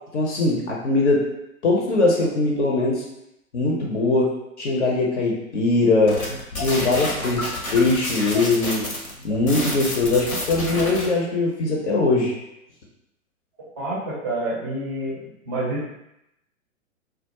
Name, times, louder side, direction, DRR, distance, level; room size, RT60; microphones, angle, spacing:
voice 1, 0.1-1.3 1.6-3.0 3.5-4.3 4.6-6.2 6.5-8.9 9.2-12.3, left 2 dB, 55° left, -2 dB, 0.6 m, -21 dB
sound 1, 6.1-11.1, left 1 dB, 85° left, 0.8 m, -29 dB
voice 2, 13.8-15.2 15.5-15.9, right 1 dB, 15° right, -8 dB, 0.4 m, -28 dB
2.2 x 2.0 x 2.8 m, 0.84 s
figure-of-eight pair, 115°, 42 cm